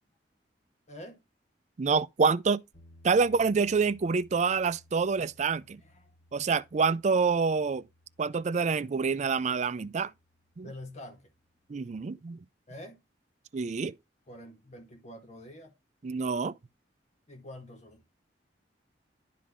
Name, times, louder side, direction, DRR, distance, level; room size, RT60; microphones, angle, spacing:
voice 1, 0.9-1.2 5.7-6.1 10.6-11.3 12.7-13.0 14.3-15.8 17.3-18.0, left 1 dB, 40° left, 1.5 m, -46 dB
voice 2, 1.8-2.6 3.0-5.8 6.3-7.8 8.2-10.1 10.6-10.7 11.7-12.4 13.5-14.0 16.0-16.6, right 5 dB, 40° right, 0.4 m, -27 dB
sound 1, 2.7-11.7, left 1 dB, 75° left, 4.0 m, -61 dB
11.0 x 3.9 x 3.6 m
head